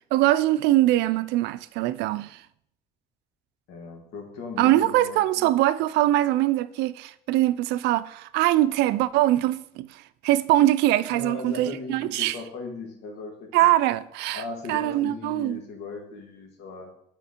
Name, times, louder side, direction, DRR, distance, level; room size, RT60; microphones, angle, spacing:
voice 1, 0.1-2.4 4.6-12.4 13.5-14.4 14.7-15.6, right 15 dB, 90° right, 0.4 m, -22 dB
voice 2, 3.7-5.6 11.1-13.7 14.3-16.9, left 3 dB, 85° left, 1.8 m, -38 dB
7.9 x 4.4 x 4.3 m
cardioid pair, 110°, 17 cm